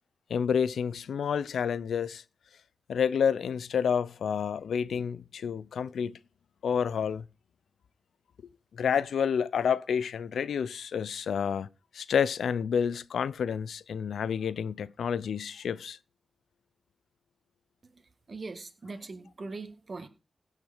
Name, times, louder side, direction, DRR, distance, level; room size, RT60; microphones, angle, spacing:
voice 1, 0.3-2.2 2.9-6.2 6.6-7.2 8.7-11.7 11.9-16.0, left 7 dB, 90° left, 0.5 m, -29 dB
voice 2, 17.9-20.1, right 3 dB, 45° right, 1.8 m, -41 dB
16.5 x 6.6 x 5.1 m
cardioid pair, 75°, 0 cm